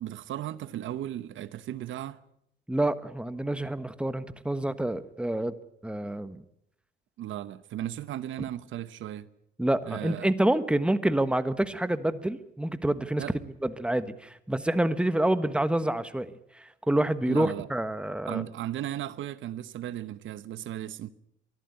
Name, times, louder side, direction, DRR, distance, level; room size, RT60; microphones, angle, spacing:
voice 1, 0.0-2.2 7.2-9.3 9.9-10.3 13.2-13.4 17.3-17.7 18.3-21.1, right 12 dB, 75° right, 1.0 m, -36 dB
voice 2, 2.7-5.5 5.8-6.4 9.6-13.2 13.6-16.3 16.5-18.4, right 1 dB, 5° right, 1.3 m, -27 dB
23.5 x 14.0 x 9.4 m
cardioid pair, 90°, 20 cm